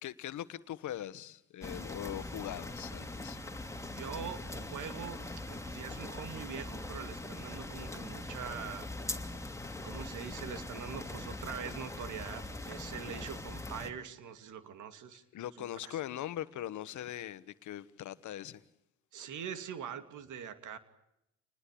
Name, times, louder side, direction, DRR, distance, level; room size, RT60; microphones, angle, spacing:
voice 1, 0.0-3.4 15.3-18.6, left 12 dB, 75° left, 1.3 m, -41 dB
sound 1, 1.6-13.9, left 2 dB, 10° left, 2.9 m, -42 dB
voice 2, 3.9-5.2 5.5-8.9 9.8-15.2 15.6-16.0 19.1-20.8, right 7 dB, 80° right, 2.8 m, -43 dB
29.0 x 20.5 x 8.6 m
cardioid pair, 90°, 30 cm